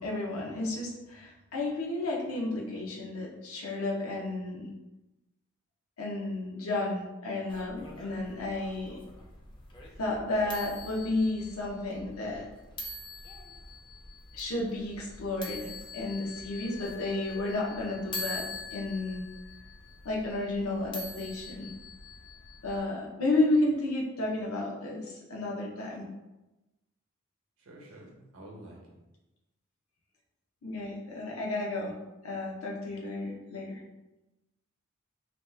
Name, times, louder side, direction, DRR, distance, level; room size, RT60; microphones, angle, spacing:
voice 1, 0.0-4.7 6.0-9.0 10.0-12.5 14.3-18.5 18.7-19.2 20.0-21.7 22.6-26.0 30.6-31.9 32.2-33.8, left 2 dB, 80° left, -2 dB, 0.7 m, -32 dB
sound 1, 7.5-22.8, left 2 dB, 25° left, 0.4 m, -44 dB
voice 2, 27.6-29.0, right 1 dB, 75° right, -1 dB, 0.8 m, -49 dB
2.9 x 2.2 x 3.2 m, 1.0 s
head